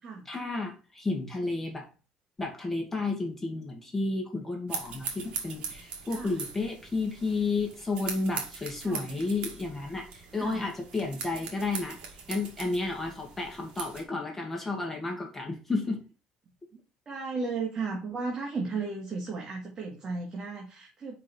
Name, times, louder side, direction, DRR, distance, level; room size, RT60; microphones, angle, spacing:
voice 1, 0.3-1.9 2.4-12.0 12.3-16.0, left 3 dB, 15° left, 1 dB, 2.2 m, -32 dB
sound 1, 4.7-14.0, right 6 dB, 55° right, 2.1 m, -41 dB
voice 2, 17.1-21.2, right 4 dB, 30° right, -1 dB, 2.0 m, -34 dB
5.3 x 5.2 x 4.5 m, 0.34 s
cardioid pair, 120°, 2 cm